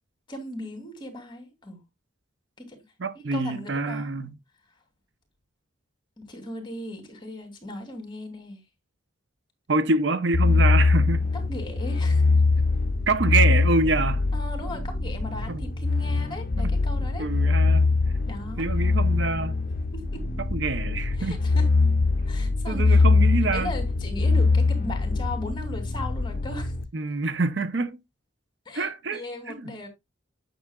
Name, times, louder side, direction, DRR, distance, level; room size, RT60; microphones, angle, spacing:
voice 1, 0.3-1.8 2.6-2.8 3.1-4.1 6.2-8.6 11.3-12.3 14.3-17.3 18.3-18.7 19.9-20.2 21.2-21.7 22.3-23.0 23.5-26.7 28.6-29.9, left 1 dB, 25° left, 2.9 m, -37 dB
voice 2, 3.0-4.3 9.7-11.3 13.1-14.3 15.5-15.6 16.6-16.7 17.2-17.9 18.6-19.5 20.5-21.4 22.7-23.7 26.9-28.0 28.7-29.2 29.5-29.7, right 3 dB, 60° right, 0.7 m, -26 dB
sound 1, 10.3-26.8, left 3 dB, 45° left, 0.8 m, -23 dB
9.5 x 7.0 x 2.3 m
head